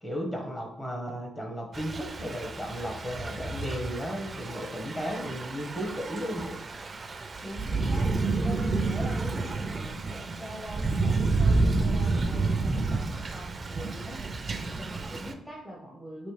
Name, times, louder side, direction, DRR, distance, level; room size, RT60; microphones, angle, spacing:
voice 1, 0.0-6.6, equal, 20° left, 1 dB, 1.1 m, -35 dB
Thunder / Rain, 1.7-15.3, right 3 dB, 35° right, 0.4 m, -30 dB
voice 2, 7.4-8.1 8.4-14.2 14.6-16.3, equal, ahead, -3 dB, 0.7 m, -42 dB
5.3 x 3.0 x 3.2 m, 0.76 s
cardioid pair, 105°, 0 cm